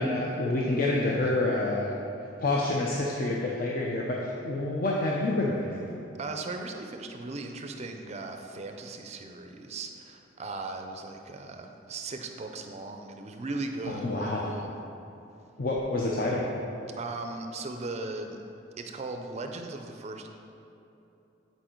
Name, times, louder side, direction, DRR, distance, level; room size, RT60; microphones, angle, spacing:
voice 1, 0.0-5.9 13.9-14.5 15.6-16.5, left 2 dB, 50° left, -3 dB, 0.6 m, -28 dB
voice 2, 6.2-14.8 17.0-18.4 18.8-20.3, right 3 dB, 35° right, 5 dB, 0.4 m, -38 dB
9.0 x 4.6 x 4.5 m, 2.9 s
head